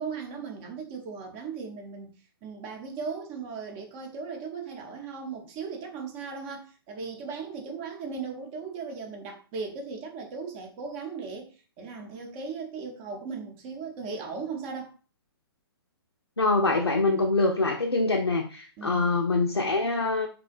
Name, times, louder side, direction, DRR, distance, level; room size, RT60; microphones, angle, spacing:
voice 1, 0.0-2.2 2.4-14.9 18.8-19.2, right 5 dB, 30° right, 0.6 m, -37 dB
voice 2, 16.4-20.3, left 3 dB, 90° left, 0.4 m, -24 dB
2.6 x 2.1 x 2.5 m
figure-of-eight pair, 125°, 13 cm